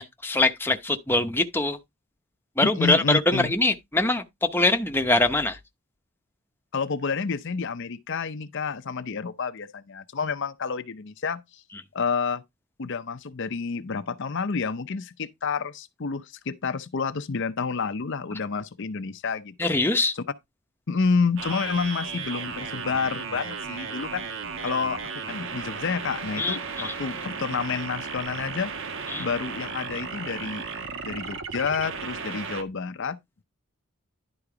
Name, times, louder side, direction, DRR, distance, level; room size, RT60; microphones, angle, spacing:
voice 1, 0.0-1.8 2.6-5.6 19.6-20.2 26.4-26.9 29.1-29.2, left 2 dB, 10° left, 0.8 m, -23 dB
voice 2, 2.6-3.5 6.7-11.6 11.9-12.4 12.8-19.7 20.1-20.2 20.9-24.3 24.6-28.7 29.2-30.6 31.0-33.2, left 5 dB, 55° left, 0.6 m, -29 dB
sound 1, 21.4-32.6, right 5 dB, 60° right, 1.2 m, -35 dB
11.0 x 3.9 x 4.9 m
head